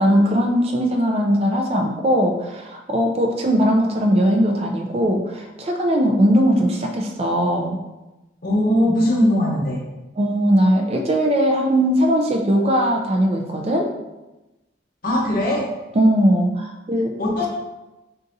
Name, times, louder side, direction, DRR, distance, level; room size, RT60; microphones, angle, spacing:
voice 1, 0.0-7.8 10.2-13.9 16.0-17.1, equal, 30° right, 2 dB, 0.4 m, -19 dB
voice 2, 8.4-9.8 15.0-15.7 17.2-17.5, left 1 dB, 50° left, -3 dB, 0.9 m, -19 dB
3.9 x 3.7 x 2.6 m, 1.0 s
head